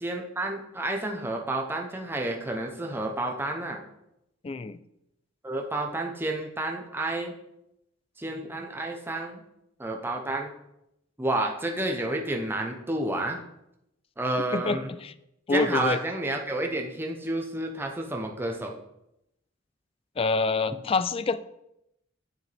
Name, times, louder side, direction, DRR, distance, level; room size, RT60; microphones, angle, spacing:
voice 1, 0.0-3.8 5.4-7.3 8.2-9.4 9.8-10.5 11.2-13.4 14.2-15.0 15.5-18.8, right 2 dB, 10° right, 2 dB, 0.7 m, -30 dB
voice 2, 4.4-4.8 14.5-15.1 15.5-16.0 20.2-21.5, left 4 dB, 30° left, 15 dB, 0.3 m, -26 dB
9.1 x 6.6 x 3.4 m, 0.83 s
head